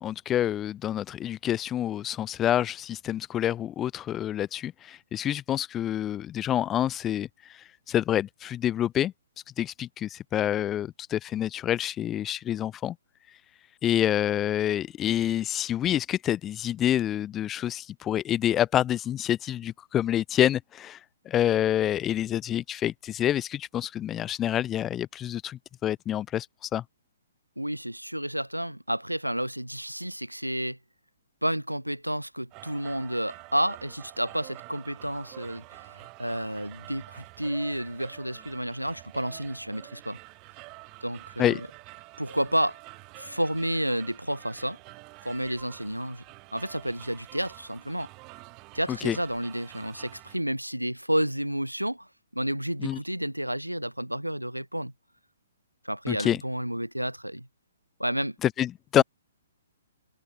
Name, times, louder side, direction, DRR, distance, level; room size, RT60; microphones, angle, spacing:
voice 1, 0.0-7.3 7.9-9.1 9.6-13.0 13.8-21.0 21.3-26.8 41.4-41.6 48.9-49.2 52.8-53.0 56.1-56.4 58.4-59.0, left 11 dB, 15° left, 0.4 m, -27 dB
voice 2, 27.6-30.8 31.4-40.2 41.0-41.7 42.2-42.8 43.2-44.8 45.2-46.2 46.5-48.1 48.7-52.1 52.3-54.9 55.8-57.5 58.0-58.4 58.9-59.0, equal, 90° right, 2.9 m, -31 dB
sound 1, 32.5-50.4, right 28 dB, 25° right, 2.5 m, -48 dB
open air
figure-of-eight pair, 125°, 0 cm